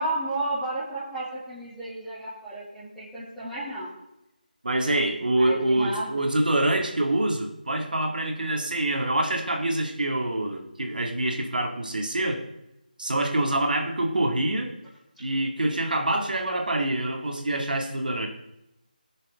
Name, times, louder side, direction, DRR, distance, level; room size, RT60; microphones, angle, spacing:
voice 1, 0.0-3.9 5.4-6.1 15.1-15.3, right 2 dB, 5° left, -15 dB, 2.3 m, -32 dB
voice 2, 4.6-12.4 13.0-14.7 15.2-18.3, right 1 dB, 70° right, 3 dB, 2.0 m, -26 dB
18.5 x 6.8 x 3.6 m, 0.87 s
figure-of-eight pair, 165°, 5 cm